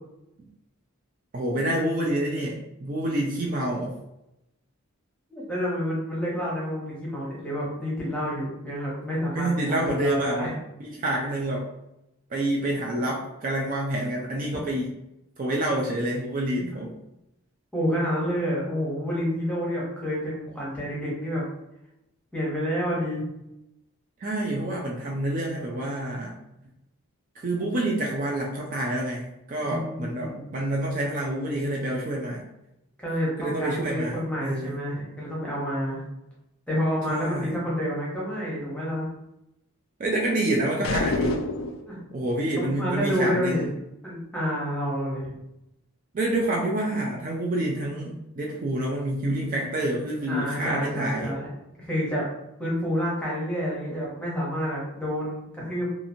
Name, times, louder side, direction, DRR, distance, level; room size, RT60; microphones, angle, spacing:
voice 1, 1.3-4.0 9.3-10.5 10.8-11.7 12.3-15.0 15.4-17.0 24.2-26.4 27.4-32.5 33.4-34.8 37.1-37.5 40.0-41.4 42.1-43.7 46.1-51.3, right 1 dB, 35° right, -2 dB, 0.3 m, -28 dB
voice 2, 5.3-10.6 17.7-21.4 22.3-23.2 29.6-30.4 33.0-36.0 36.7-39.1 41.8-42.0 42.6-43.7 44.0-45.3 50.3-51.5 51.8-52.3 52.6-55.9, equal, 5° left, -6 dB, 0.7 m, -29 dB
sound 1, 40.8-41.9, left 2 dB, 60° left, 0.3 m, -27 dB
2.8 x 2.4 x 2.6 m, 0.88 s
head